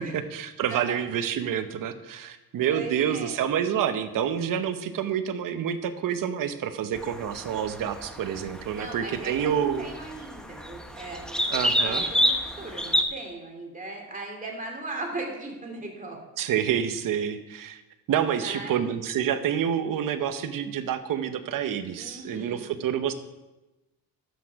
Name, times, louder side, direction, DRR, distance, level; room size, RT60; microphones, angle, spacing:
voice 1, 0.0-9.9 11.5-12.0 16.4-17.8 18.1-23.1, right 9 dB, 60° right, 10 dB, 0.9 m, -28 dB
voice 2, 2.7-3.4 8.7-16.2 18.3-18.9 21.9-22.7, right 2 dB, 20° right, 1 dB, 2.7 m, -38 dB
sound 1, 6.9-13.0, equal, ahead, 0.9 m, -29 dB
12.5 x 8.4 x 4.7 m, 1.0 s
cardioid pair, 130°, 36 cm